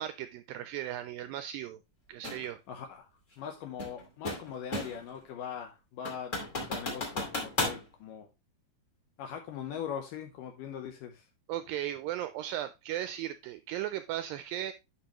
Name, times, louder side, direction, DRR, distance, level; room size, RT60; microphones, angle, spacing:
voice 1, 0.0-1.8 2.1-2.6 11.5-14.7, right 12 dB, 85° right, 11 dB, 2.0 m, -36 dB
sound 1, 2.2-2.4 3.8-5.1 5.5-5.6 6.0-7.8, left 2 dB, 25° left, 1.9 m, -34 dB
voice 2, 2.7-3.1 3.4-6.4 6.7-8.3 9.2-11.3, left 8 dB, 75° left, 5 dB, 2.1 m, -41 dB
10.0 x 5.3 x 3.0 m, 0.24 s
omnidirectional pair, 4.5 m